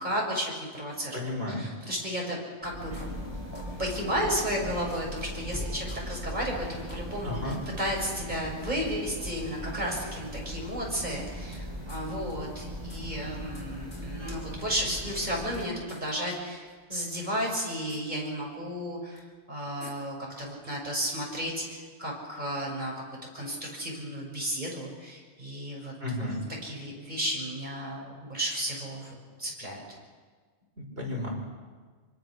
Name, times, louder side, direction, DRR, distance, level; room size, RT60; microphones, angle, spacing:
voice 1, 0.0-2.9 3.8-22.9 23.3-25.9 26.6-30.0, equal, 35° right, -2 dB, 7.1 m, -33 dB
voice 2, 1.1-1.7 7.2-7.6 26.0-26.4 30.8-31.3, left 1 dB, 55° right, -1 dB, 5.9 m, -33 dB
sound 1, 2.6-15.7, equal, 20° right, 6.0 m, -39 dB
sound 2, 2.9-3.6 3.9-4.0 4.4-4.5 4.8-5.6 5.9-6.0 6.4-6.5 6.8-7.6 7.8-8.0 8.3-8.4 9.3-9.4 10.4-11.6 11.9-12.0 12.3-12.4 12.6-13.7 13.9-14.1 14.4-15.0 15.3-16.0 16.3-17.6 17.9-18.0 19.2-19.3 19.8-19.9, left 2 dB, 85° left, 4.0 m, -51 dB
26.5 x 24.5 x 6.6 m, 1.5 s
omnidirectional pair, 1.2 m